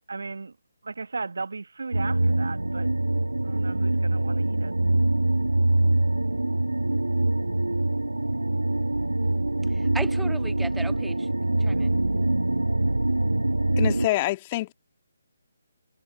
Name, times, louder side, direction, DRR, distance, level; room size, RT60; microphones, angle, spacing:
voice 1, 0.1-0.5 0.8-2.9 3.4-4.7 8.8-8.9, right 4 dB, 65° right, 1.4 m, -36 dB
sound 1, 1.9-14.1, right 2 dB, 80° right, 1.3 m, -24 dB
voice 2, 9.7-11.3 11.6-12.0, right 3 dB, 5° right, 1.7 m, -37 dB
voice 3, 13.8-14.7, left 18 dB, 25° left, 1.7 m, -26 dB
figure-of-eight pair, 145°, 0 cm